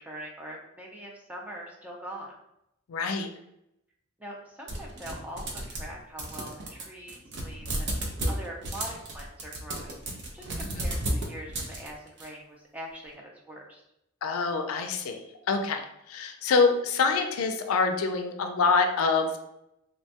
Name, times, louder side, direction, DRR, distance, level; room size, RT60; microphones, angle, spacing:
voice 1, 0.0-2.3 4.2-7.9 8.3-11.0 11.3-13.8, equal, 5° right, -2 dB, 0.4 m, -43 dB
voice 2, 2.9-3.3 14.2-15.2 15.5-15.8 16.1-19.4, left 4 dB, 80° left, 6 dB, 0.4 m, -25 dB
sound 1, 4.7-5.9 6.2-12.3, right 1 dB, 55° right, 0.5 m, -33 dB
3.1 x 2.2 x 2.7 m, 0.82 s
head